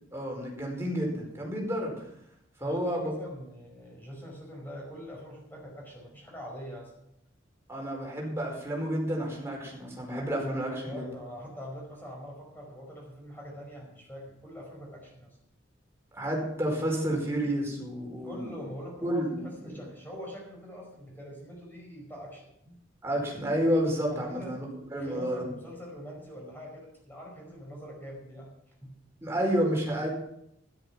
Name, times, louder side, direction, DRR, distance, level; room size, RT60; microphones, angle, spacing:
voice 1, 0.1-1.9 2.6-3.1 7.7-11.0 16.1-18.5 19.0-19.4 19.7-19.8 23.0-24.7 24.9-25.4 29.2-30.1, equal, 15° right, -1 dB, 4.7 m, -30 dB
voice 2, 2.6-6.9 10.8-15.4 18.2-22.8 24.1-24.6 24.9-28.5 28.8-29.0, equal, 10° left, -1 dB, 4.9 m, -43 dB
13.0 x 12.0 x 5.9 m, 0.76 s
head